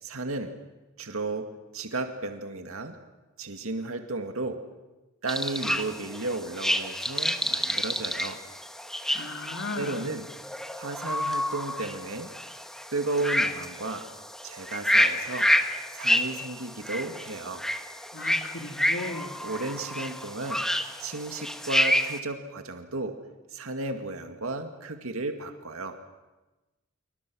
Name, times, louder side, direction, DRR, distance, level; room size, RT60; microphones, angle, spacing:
voice 1, 0.0-0.5 1.0-1.5 1.7-3.0 3.4-4.6 5.2-8.4 9.7-10.3 10.8-12.3 12.9-14.1 14.4-15.5 15.9-17.6 19.4-20.6 21.0-23.1 23.5-26.0, right 2 dB, 80° right, 5 dB, 2.1 m, -33 dB
sound 1, 5.3-22.2, left 1 dB, ahead, 1.3 m, -29 dB
voice 2, 9.1-10.0 18.1-19.3, left 3 dB, 70° left, 5 dB, 2.3 m, -36 dB
27.0 x 24.5 x 6.3 m, 1.1 s
head